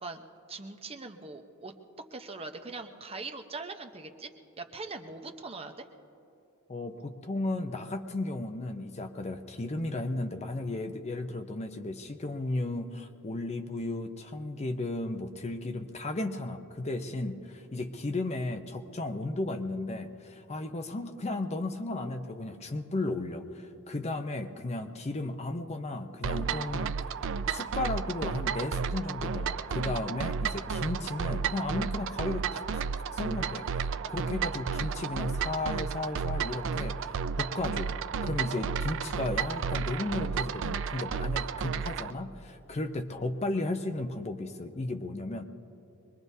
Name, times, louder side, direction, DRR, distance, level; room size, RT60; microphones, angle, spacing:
voice 1, 0.0-1.7 2.1-4.3 4.6-5.9, right 3 dB, 25° right, 5 dB, 0.8 m, -41 dB
voice 2, 6.7-27.0 27.5-32.8 33.1-37.9 38.2-45.4, left 2 dB, 30° left, 7 dB, 0.6 m, -34 dB
sound 1, 26.2-42.1, right 6 dB, 60° right, 0.4 m, -32 dB
24.0 x 21.0 x 2.7 m, 2.8 s
head